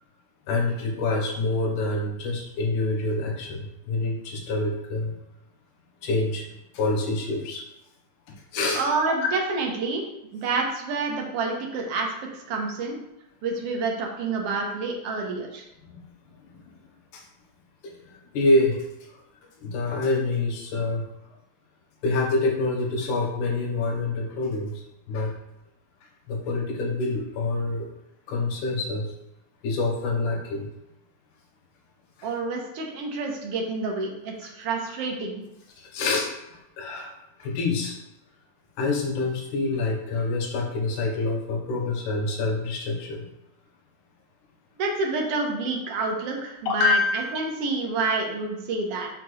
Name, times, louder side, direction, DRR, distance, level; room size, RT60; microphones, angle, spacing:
voice 1, 0.5-5.1 6.0-7.6 8.5-8.8 15.9-16.0 16.4-16.6 17.1-17.2 17.8-18.9 19.6-21.0 22.0-25.3 26.3-27.8 28.3-29.1 29.6-30.7 34.4-34.5 35.8-36.3 36.8-38.0 38.8-43.3 46.7-47.5, left 2 dB, 90° left, 1 dB, 2.6 m, -26 dB
voice 2, 8.7-10.0 10.3-13.0 13.4-15.6 32.2-35.4 44.8-49.1, right 3 dB, 65° right, 0 dB, 1.6 m, -28 dB
5.9 x 5.9 x 3.1 m, 0.88 s
omnidirectional pair, 3.5 m